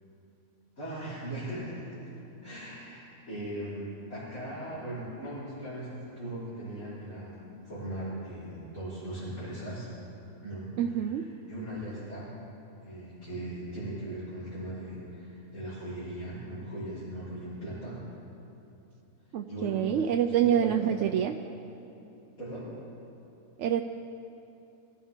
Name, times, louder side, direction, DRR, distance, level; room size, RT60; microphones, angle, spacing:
voice 1, 0.8-2.2 2.4-7.3 7.6-9.9 10.4-10.7 11.0-11.1 11.5-12.3 12.8-18.0 19.5-21.2 22.4-22.7, right 1 dB, 90° left, -14 dB, 5.1 m, -39 dB
voice 2, 10.8-11.3 19.3-21.4 23.6-23.8, right 9 dB, 65° right, 5 dB, 0.8 m, -26 dB
23.5 x 13.5 x 3.7 m, 2.9 s
omnidirectional pair, 1.5 m